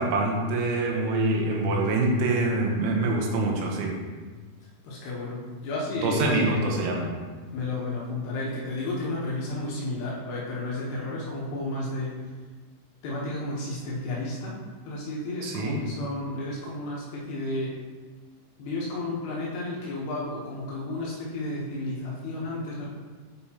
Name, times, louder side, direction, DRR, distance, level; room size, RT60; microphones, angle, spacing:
voice 1, 0.0-3.9 6.0-7.1 15.4-15.8, right 2 dB, 80° right, -1 dB, 3.3 m, -25 dB
voice 2, 4.8-6.6 7.5-12.2 13.0-17.8 18.6-22.9, left 2 dB, 70° left, -5 dB, 2.9 m, -32 dB
8.8 x 5.0 x 2.9 m, 1.4 s
omnidirectional pair, 5.5 m